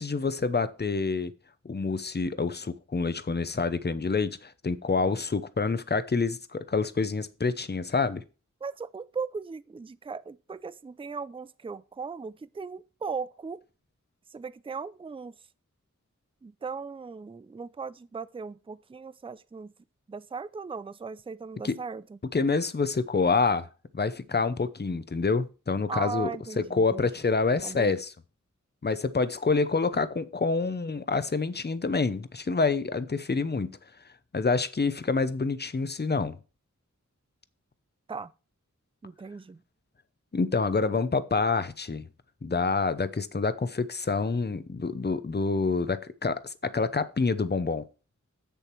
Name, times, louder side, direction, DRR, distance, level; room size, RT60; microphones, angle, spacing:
voice 1, 0.0-1.3 1.6-8.2 21.6-21.8 22.3-23.7 23.9-26.3 26.6-28.1 28.8-33.7 34.3-36.4 40.3-42.1 42.4-47.9, left 4 dB, 35° left, 0.7 m, -27 dB
voice 2, 8.6-13.6 14.3-15.3 16.4-19.7 20.1-22.2 25.9-27.1 27.6-28.0 38.1-38.3 39.0-39.6, right 5 dB, 20° right, 0.4 m, -38 dB
7.8 x 6.9 x 4.5 m
wide cardioid pair, 55°, 30 cm